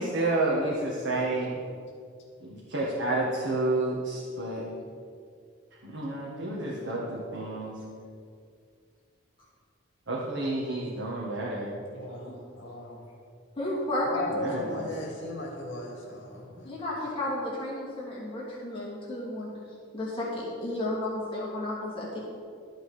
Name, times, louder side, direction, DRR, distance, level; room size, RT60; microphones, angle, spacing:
voice 1, 0.0-1.5 2.4-4.6 5.8-7.7 10.1-11.7 14.4-14.6, right 2 dB, 65° right, -4 dB, 1.6 m, -30 dB
voice 2, 1.1-1.7 11.9-13.0 14.0-16.7, left 1 dB, 60° left, -1 dB, 2.5 m, -37 dB
voice 3, 13.6-14.3 16.6-19.5 19.9-22.2, left 1 dB, 25° left, -6 dB, 2.6 m, -32 dB
13.0 x 7.9 x 5.0 m, 2.3 s
head